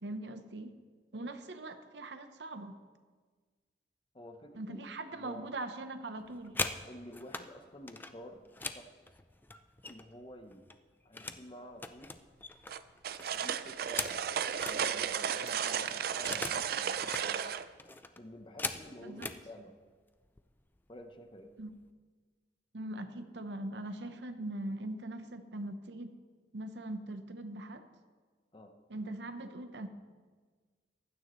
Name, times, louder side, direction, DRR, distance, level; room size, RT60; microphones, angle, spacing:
voice 1, 0.0-0.7 1.1-2.8 4.6-6.5 19.0-19.3 21.6-21.7 22.7-26.1 26.5-27.8 28.9-29.9, right 1 dB, 80° right, 8 dB, 0.9 m, -41 dB
voice 2, 4.1-4.8 5.1-5.5 6.9-8.9 9.8-10.6 11.0-12.1 13.3-14.3 14.7-17.5 18.2-19.8 20.9-21.5 28.5-28.7, equal, 30° left, 6 dB, 0.9 m, -50 dB
sound 1, 6.2-7.5 7.9-10.2 10.5-11.5 11.8-14.8 15.2-15.3 15.5-16.7 17.0-17.3 17.8-19.4 20.2-20.4 20.8-21.1 21.4-21.9, left 3 dB, 10° left, 0.4 m, -41 dB
sound 2, 12.7-17.6, right 8 dB, 60° right, 0.4 m, -34 dB
15.5 x 12.0 x 3.1 m, 1.5 s
head